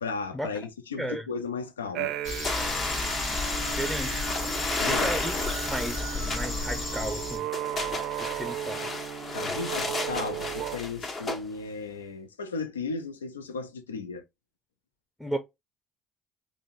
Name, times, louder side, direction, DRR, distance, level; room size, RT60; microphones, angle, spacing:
voice 1, 0.0-2.2 4.7-5.1 9.3-14.2, left 4 dB, 90° left, 0.4 m, -35 dB
sound 1, 1.9-10.8, right 10 dB, 65° right, 0.4 m, -36 dB
sound 2, 2.2-7.4, left 3 dB, 65° left, 1.2 m, -34 dB
sound 3, 2.4-11.4, left 3 dB, 40° left, 1.0 m, -33 dB
voice 2, 3.7-4.3 4.8-7.5 8.3-8.9 15.2-15.4, right 1 dB, ahead, 0.6 m, -34 dB
3.8 x 2.1 x 2.4 m
hypercardioid pair, 55°, 0 cm